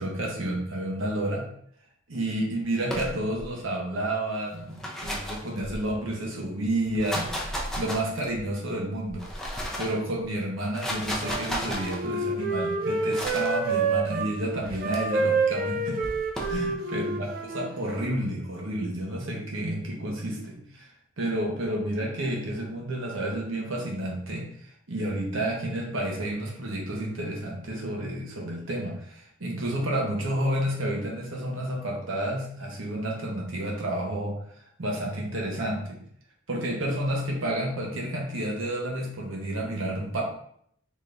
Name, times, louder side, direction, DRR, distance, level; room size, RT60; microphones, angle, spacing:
voice 1, 0.0-1.5 2.1-9.3 9.8-16.0 16.5-20.9 21.2-34.3 34.8-36.0 36.5-40.2, right 1 dB, 75° right, -1 dB, 1.0 m, -30 dB
sound 1, 2.8-3.5 4.6-6.1 6.8-8.4 9.1-10.0 10.6-12.0 13.1-13.6 14.6-15.0 16.0-16.6, equal, 5° left, 0.6 m, -34 dB
Wind instrument woodwind instrument, 11.2-14.3 14.7-18.2, right 3 dB, 50° right, 0.5 m, -28 dB
3.7 x 3.4 x 2.5 m, 0.67 s
head